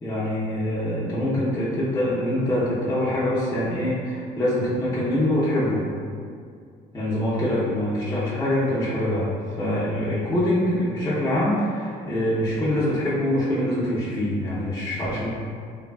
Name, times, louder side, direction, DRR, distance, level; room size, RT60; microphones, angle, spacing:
voice 1, 0.0-5.8 6.9-15.3, left 1 dB, 20° left, -10 dB, 0.6 m, -24 dB
3.2 x 2.2 x 2.2 m, 2.2 s
cardioid pair, 110°, 17 cm